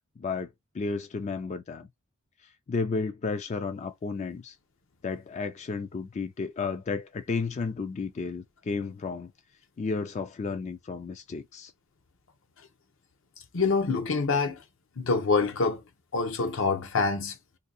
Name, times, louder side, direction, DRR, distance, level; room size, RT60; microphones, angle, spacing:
voice 1, 0.2-0.5 0.7-1.9 2.4-4.6 5.0-9.3 9.8-11.7, left 4 dB, 35° left, 0.3 m, -32 dB
voice 2, 13.5-14.6 15.0-15.8 16.1-17.3, left 4 dB, 65° left, 0.7 m, -26 dB
2.7 x 2.6 x 3.9 m
head